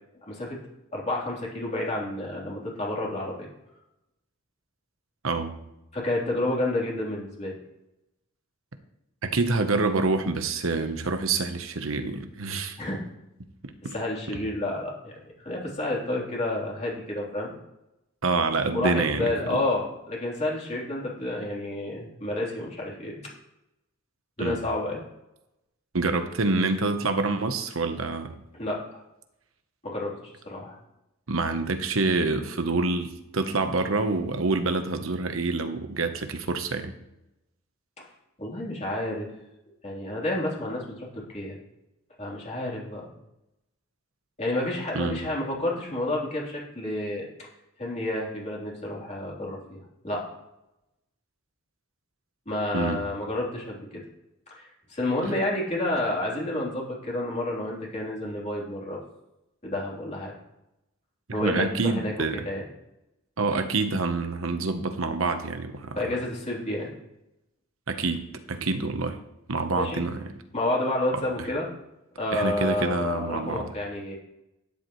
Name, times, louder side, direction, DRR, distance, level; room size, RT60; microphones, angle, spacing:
voice 1, 0.3-0.6 0.9-3.5 5.9-7.5 12.8-13.0 13.9-15.1 15.4-17.5 18.7-23.2 24.4-25.0 28.6-28.8 29.8-30.8 38.0-38.1 38.4-39.3 39.8-41.6 42.2-43.1 44.4-47.3 47.8-49.8 50.0-50.2 52.5-53.9 54.5-59.0 59.6-60.3 61.3-62.1 62.4-62.6 66.0-66.9 69.7-70.0 70.5-71.7 72.2-74.2, left 1 dB, 35° left, -3 dB, 3.5 m, -30 dB
voice 2, 5.2-5.6 9.2-12.8 13.6-13.9 14.3-14.4 18.2-19.3 24.4-24.6 25.9-28.4 31.3-37.0 44.9-45.2 52.7-53.0 55.2-55.4 61.3-62.5 63.4-66.0 67.9-69.2 69.5-70.3 71.4-71.5 72.3-73.7, right 3 dB, 80° right, 8 dB, 1.0 m, -27 dB
12.0 x 11.0 x 3.2 m, 0.88 s
head